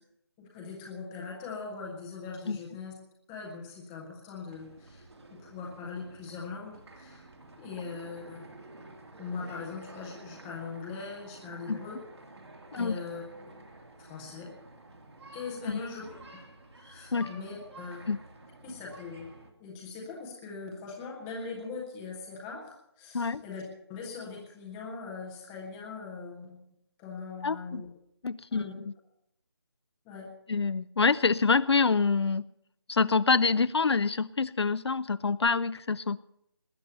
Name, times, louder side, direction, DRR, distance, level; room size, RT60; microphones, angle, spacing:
voice 1, 0.4-2.9 3.3-7.3 7.6-8.5 9.2-12.0 12.7-13.2 14.0-14.5 15.3-16.1 16.8-18.1 18.6-19.3 19.6-23.6 23.9-26.6 27.0-27.9 28.5-28.7 30.0-30.3, left 4 dB, ahead, -2 dB, 0.5 m, -41 dB
sound 1, 4.5-19.5, right 2 dB, 75° right, 3.0 m, -50 dB
voice 2, 27.4-27.8 28.2-28.9 30.5-32.4 32.9-36.2, left 4 dB, 75° left, 15 dB, 0.5 m, -26 dB
19.5 x 8.0 x 7.0 m, 0.78 s
figure-of-eight pair, 175°, 14 cm